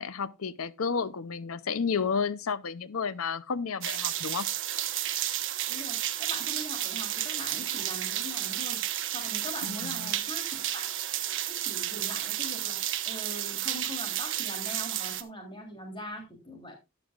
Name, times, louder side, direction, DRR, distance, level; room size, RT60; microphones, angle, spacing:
voice 1, 0.0-4.5 9.6-10.1, left 5 dB, 80° left, 0.7 m, -31 dB
sound 1, 3.8-15.2, right 12 dB, 60° right, 1.0 m, -32 dB
voice 2, 5.7-8.8 9.1-10.9 11.5-12.8 13.1-16.8, left 1 dB, 25° left, 3.4 m, -42 dB
13.5 x 9.8 x 2.4 m
head